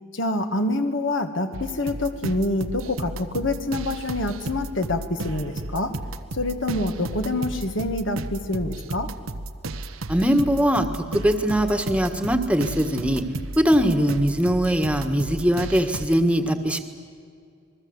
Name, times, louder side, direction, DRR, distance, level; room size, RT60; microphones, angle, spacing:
voice 1, 0.1-5.9 6.3-9.1, left 2 dB, 65° left, 6 dB, 2.2 m, -26 dB
sound 1, 1.5-16.1, right 2 dB, 90° right, 1.2 m, -33 dB
voice 2, 10.1-13.2 13.6-16.8, equal, 5° right, 8 dB, 1.6 m, -21 dB
28.0 x 21.5 x 8.1 m, 2.3 s
head